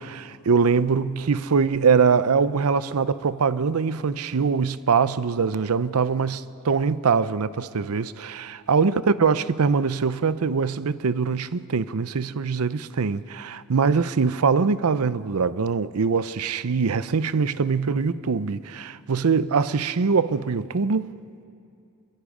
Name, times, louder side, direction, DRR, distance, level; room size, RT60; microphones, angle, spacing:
voice 1, 0.0-21.1, right 5 dB, 85° right, 0.6 m, -23 dB
26.0 x 23.0 x 5.0 m
head